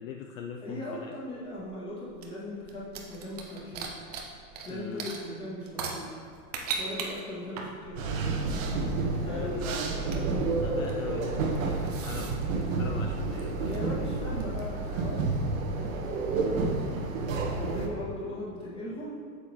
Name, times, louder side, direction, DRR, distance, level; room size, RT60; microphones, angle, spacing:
voice 1, 0.0-1.2 4.7-5.1 9.1-14.6 16.4-16.8, left 6 dB, 55° left, 3 dB, 0.6 m, -41 dB
voice 2, 0.6-4.0 4.6-6.2 6.8-8.3 9.1-10.6 13.6-15.3 15.7-15.9 17.6-19.2, left 1 dB, 10° left, -9 dB, 1.9 m, -38 dB
sound 1, 1.3-4.7 5.0-14.9, right 4 dB, 25° right, 0.4 m, -40 dB
sound 2, 8.0-17.9, right 3 dB, 55° right, 1.1 m, -30 dB
8.0 x 7.3 x 3.0 m, 2.1 s
supercardioid pair, 160°, 48 cm